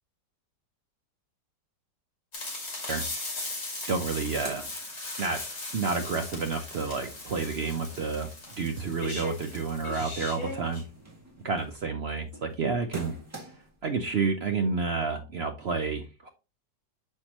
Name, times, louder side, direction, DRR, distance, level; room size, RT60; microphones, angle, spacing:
sound 1, 2.3-10.8, left 2 dB, 55° left, 2.8 m, -38 dB
sound 2, 3.4-3.5 3.8-5.6 5.9-13.8, right 2 dB, 10° right, 1.9 m, -47 dB
voice 1, 3.9-4.6 5.2-5.4 5.7-8.3 8.6-10.8 11.4-13.1 13.8-16.3, right 4 dB, 70° right, 5 dB, 0.6 m, -30 dB
6.4 x 5.7 x 2.9 m, 0.29 s
omnidirectional pair, 1.9 m